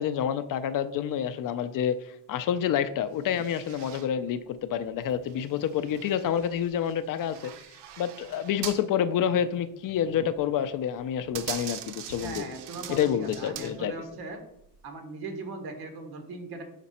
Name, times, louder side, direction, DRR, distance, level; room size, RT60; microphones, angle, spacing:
voice 1, 0.0-7.5 8.0-12.5 12.9-13.9, left 9 dB, 55° left, 12 dB, 0.4 m, -28 dB
sound 1, 3.2-4.1 4.6-8.9 9.2-9.3 10.1-10.5 10.9-14.1 14.6-14.9, right 10 dB, 85° right, 0.8 m, -42 dB
voice 2, 12.2-14.4 14.8-16.6, right 3 dB, 65° right, 5 dB, 1.6 m, -39 dB
6.1 x 5.9 x 4.2 m, 0.76 s
cardioid pair, 175°, 40 cm